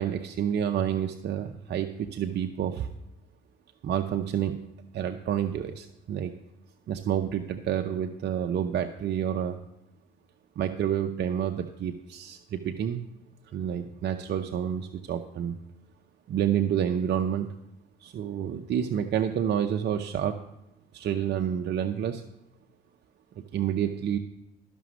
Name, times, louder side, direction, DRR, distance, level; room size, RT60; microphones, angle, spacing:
voice 1, 0.0-2.9 3.8-4.6 4.9-6.3 6.9-9.6 10.6-13.0 13.5-15.6 16.3-17.5 18.0-20.4 20.9-22.2 23.4-24.2, right 9 dB, 60° right, 6 dB, 0.7 m, -29 dB
13.0 x 6.0 x 6.1 m, 0.91 s
supercardioid pair, 75°, 19 cm